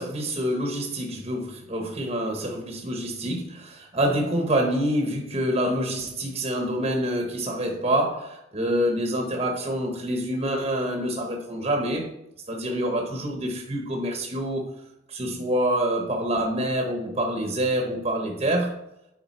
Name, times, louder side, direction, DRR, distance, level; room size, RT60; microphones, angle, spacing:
voice 1, 0.0-12.1 12.5-14.7 15.1-18.8, right 1 dB, 30° right, 1.0 m, -26 dB
9.0 x 4.9 x 4.2 m
head